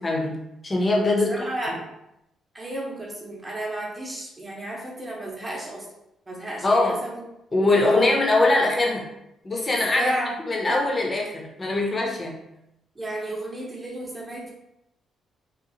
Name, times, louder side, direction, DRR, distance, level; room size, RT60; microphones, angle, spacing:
voice 1, 0.0-1.5 6.6-7.0 7.5-9.1 9.4-10.1 10.5-12.4, left 2 dB, 30° left, -1 dB, 0.6 m, -22 dB
voice 2, 1.2-1.9 2.5-5.9 6.3-7.2 7.6-8.0 10.0-10.4 10.6-10.9 13.0-14.5, right 1 dB, 25° right, -3 dB, 0.7 m, -33 dB
2.9 x 2.0 x 2.7 m, 0.86 s
cardioid pair, 90°, 0 cm